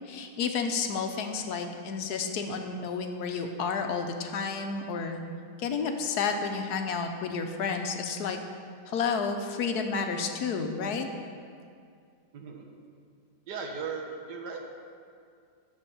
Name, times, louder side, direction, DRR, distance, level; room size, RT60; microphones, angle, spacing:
voice 1, 0.1-5.2 5.6-8.4 8.9-11.1, left 5 dB, 70° left, 5 dB, 1.2 m, -31 dB
voice 2, 12.3-12.7 13.5-14.6, right 5 dB, 75° right, 2 dB, 1.7 m, -37 dB
13.0 x 4.4 x 6.9 m, 2.2 s
omnidirectional pair, 1.8 m